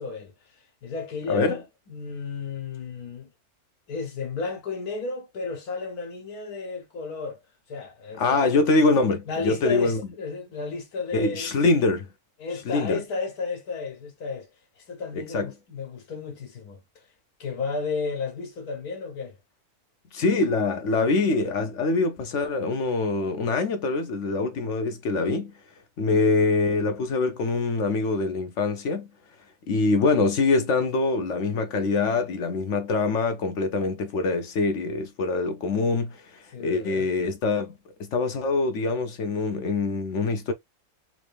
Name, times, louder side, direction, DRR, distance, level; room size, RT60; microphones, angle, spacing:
voice 1, 0.0-3.3 3.9-7.4 7.7-8.5 9.3-11.6 12.4-14.5 14.8-17.1 17.4-19.4 26.1-26.3 36.5-37.1, left 4 dB, 80° left, 1.5 m, -33 dB
voice 2, 8.2-10.0 11.1-12.1 12.7-13.0 15.1-15.5 20.1-25.5 26.0-29.1 29.7-37.7 38.0-40.5, left 3 dB, 60° left, 0.9 m, -24 dB
3.6 x 2.7 x 3.2 m
omnidirectional pair, 1.6 m